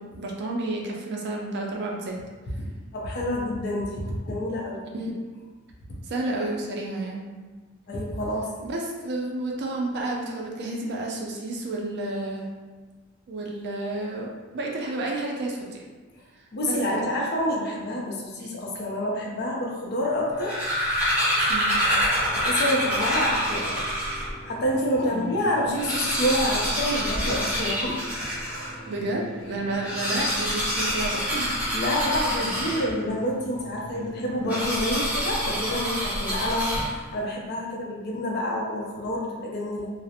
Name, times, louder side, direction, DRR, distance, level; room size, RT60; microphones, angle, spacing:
voice 1, 0.0-2.2 4.9-5.1 6.0-7.3 8.6-12.5 13.3-15.8 16.7-17.1 18.4-18.6 21.5-21.8 25.1-25.3 28.9-31.6 36.2-36.3, right 2 dB, 55° right, -1 dB, 0.4 m, -31 dB
voice 2, 2.6-4.8 7.9-8.5 16.5-20.6 22.4-23.8 24.4-28.0 28.4-28.9 31.7-39.9, left 1 dB, 55° left, -2 dB, 0.5 m, -28 dB
sound 1, 20.2-24.4 24.9-25.0 25.2-25.3 25.6-28.8 29.7-33.2 34.5-37.2, equal, 5° right, 0.6 m, -27 dB
Orange treasure - experimental electronic music, 22.2-36.9, right 1 dB, 35° left, 0.9 m, -44 dB
2.5 x 2.0 x 2.7 m, 1.3 s
head